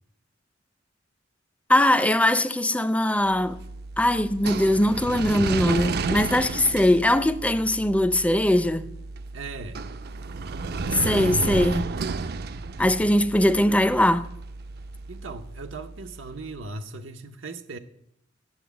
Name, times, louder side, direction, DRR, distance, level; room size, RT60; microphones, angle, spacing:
voice 1, 1.7-3.6 4.0-8.9 10.9-11.9 12.8-14.3, left 1 dB, 5° left, 0.5 m, -21 dB
sound 1, 3.3-16.4, right 4 dB, 55° right, 0.5 m, -32 dB
voice 2, 9.3-9.8 15.1-17.8, right 3 dB, 85° right, 0.8 m, -38 dB
9.7 x 7.2 x 8.1 m
head